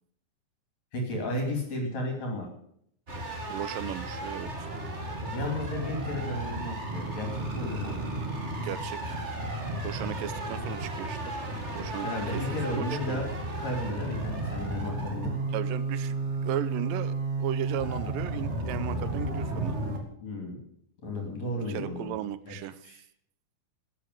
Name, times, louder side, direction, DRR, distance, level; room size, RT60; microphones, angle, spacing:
voice 1, 0.9-2.5 5.3-7.3 7.5-8.0 12.0-13.3 13.6-15.3 20.2-20.6 21.0-22.1 22.5-22.6 22.8-23.0, left 1 dB, 50° left, 2 dB, 3.9 m, -33 dB
sound 1, 3.1-20.0, right 2 dB, 25° right, 1.7 m, -33 dB
voice 2, 3.5-4.7 8.5-9.2 9.8-11.3 11.7-13.2 15.5-19.8 21.7-22.9, right 12 dB, 80° right, 14 dB, 2.3 m, -36 dB
14.0 x 8.7 x 8.2 m, 0.69 s
omnidirectional pair, 4.1 m